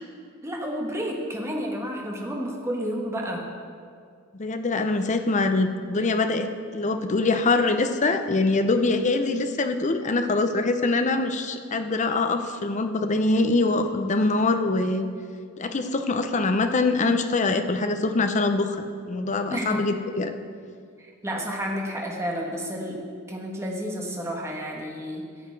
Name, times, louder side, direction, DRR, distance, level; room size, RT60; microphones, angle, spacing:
voice 1, 0.4-3.4 19.5-19.8 21.0-25.3, equal, 10° right, -1 dB, 1.3 m, -31 dB
voice 2, 4.3-15.0 15.6-20.3, left 3 dB, 35° left, 7 dB, 0.6 m, -24 dB
13.5 x 7.2 x 4.6 m, 2.2 s
head